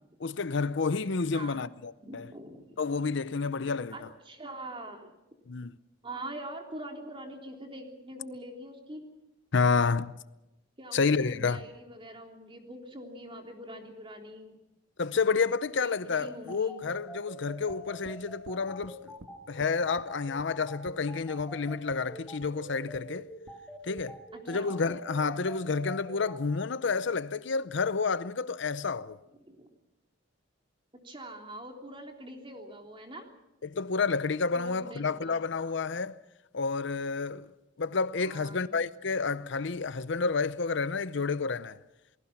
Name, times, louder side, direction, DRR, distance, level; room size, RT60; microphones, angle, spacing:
voice 1, 0.2-2.3 2.8-3.9 5.5-5.7 9.5-10.1 10.9-11.6 15.0-19.1 19.5-23.3 23.8-24.2 24.5-29.2 33.6-36.2 36.5-37.5 37.8-41.8, left 4 dB, 65° left, 0.7 m, -30 dB
voice 2, 2.0-2.8 3.9-5.2 6.0-9.0 10.8-14.6 15.8-16.8 24.3-24.7 29.4-29.7 31.0-33.3 34.5-35.4 38.2-38.7, right 1 dB, 25° right, 3.4 m, -44 dB
sound 1, 16.5-26.4, equal, ahead, 7.2 m, -45 dB
sound 2, 17.7-18.2 18.5-19.0 19.2-19.3 19.6-20.1 20.4-20.5 20.9-21.0 21.4-21.5 21.9-22.0 22.4-22.5 22.9-23.1 23.5-23.6 24.0-24.1, right 1 dB, 90° right, 2.2 m, -50 dB
28.5 x 19.5 x 5.9 m
head